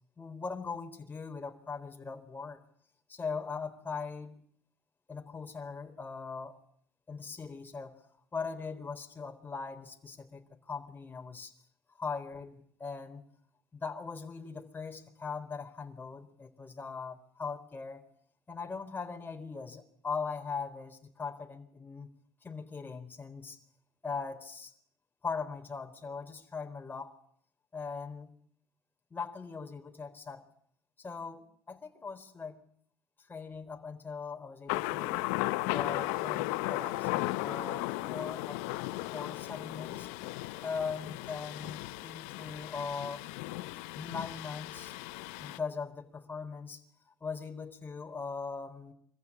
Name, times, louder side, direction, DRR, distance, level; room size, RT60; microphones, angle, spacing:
voice 1, 0.2-2.6 3.1-4.4 5.1-6.6 7.1-8.0 8.3-11.5 12.0-13.2 13.7-18.0 18.5-22.1 22.4-23.6 24.0-24.7 25.2-27.2 27.7-28.3 29.1-30.4 31.0-32.6 33.3-35.2 35.7-38.6 39.1-40.1 40.6-43.2 44.0-44.9 45.4-46.8 47.2-48.9, left 5 dB, 25° left, 5 dB, 4.0 m, -40 dB
Thunder, 34.7-45.6, left 19 dB, 85° left, 0.9 m, -36 dB
26.0 x 15.0 x 9.8 m, 0.64 s
supercardioid pair, 70°, 8 cm